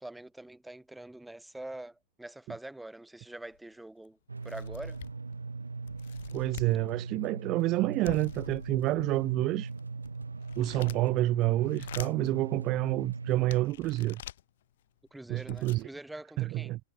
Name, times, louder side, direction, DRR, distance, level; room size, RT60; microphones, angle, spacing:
voice 1, 0.0-4.2 4.4-5.0 15.1-16.7, right 1 dB, 5° right, 2.7 m, -44 dB
sound 1, 3.5-3.6 4.0-4.1 4.4-5.3 5.9-6.8 8.0-9.1 9.7-11.2 11.6-12.3 12.9-13.0 13.5-14.4 15.1-15.2 15.4-15.8, left 13 dB, 60° left, 4.5 m, -46 dB
sound 2, 4.3-13.5, right 3 dB, 85° right, 4.8 m, -40 dB
voice 2, 6.3-9.7 10.6-14.2 15.3-15.9 16.4-16.8, right 18 dB, 40° right, 1.0 m, -28 dB
figure-of-eight pair, 100°, 0 cm